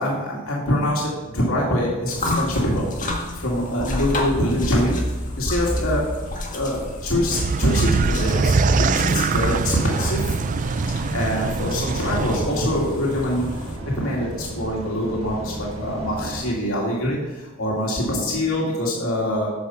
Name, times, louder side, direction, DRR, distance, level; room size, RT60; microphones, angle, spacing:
voice 1, 0.0-2.9 3.4-5.0 5.4-6.1 6.5-10.3 10.9-13.5 14.0-19.5, left 1 dB, 90° left, -3 dB, 2.4 m, -24 dB
sound 1, 2.1-13.8, left 1 dB, 40° left, 1.8 m, -30 dB
sound 2, 7.3-12.4, right 4 dB, 40° right, 0.4 m, -22 dB
sound 3, 9.8-16.6, right 1 dB, 90° right, 1.6 m, -33 dB
9.6 x 6.9 x 5.7 m, 1.2 s
head